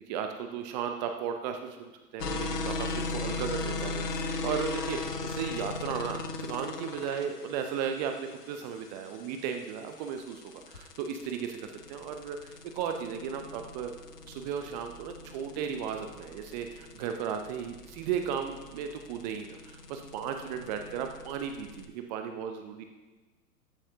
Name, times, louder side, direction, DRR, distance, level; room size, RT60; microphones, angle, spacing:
voice 1, 0.1-13.9 14.2-22.8, right 7 dB, 30° right, 5 dB, 0.6 m, -35 dB
sound 1, 2.2-21.9, left 3 dB, 80° left, 1.1 m, -38 dB
13.5 x 9.8 x 2.8 m, 1.2 s
figure-of-eight pair, 105°, 47 cm